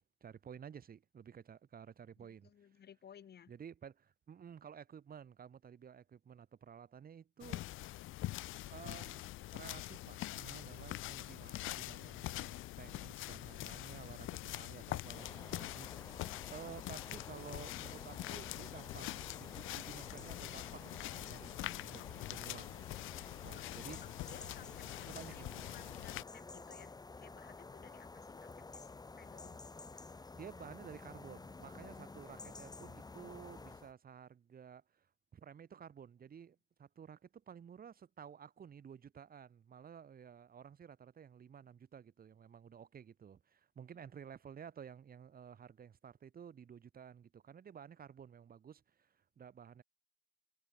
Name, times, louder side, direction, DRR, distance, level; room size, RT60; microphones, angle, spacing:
voice 1, 0.0-2.8 3.5-7.6 8.7-22.7 23.4-24.0 25.1-25.7 30.3-49.8, right 7 dB, 45° right, 3.2 m, -53 dB
voice 2, 2.2-3.5 23.5-25.4 25.7-29.7 43.9-44.0, left 8 dB, 55° left, 5.7 m, -59 dB
sound 1, 7.4-26.2, left 16 dB, 75° left, 0.4 m, -44 dB
sound 2, 10.8-14.8 15.1-16.0 17.1-17.5 17.9-20.9, right 3 dB, 20° right, 7.0 m, -71 dB
sound 3, 15.1-33.9, left 3 dB, 20° left, 1.6 m, -52 dB
cardioid pair, 120°, 21 cm